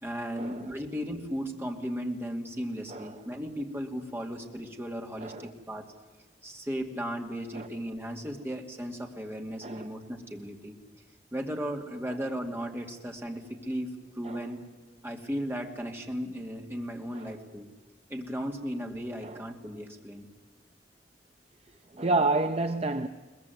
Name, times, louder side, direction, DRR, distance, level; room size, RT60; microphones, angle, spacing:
voice 1, 0.0-5.9 6.4-10.8 11.3-14.6 15.0-17.7 18.1-20.3, equal, 15° right, 2.5 m, -36 dB
voice 2, 22.0-23.1, right 2 dB, 35° right, 0.7 m, -29 dB
23.0 x 20.5 x 9.4 m
head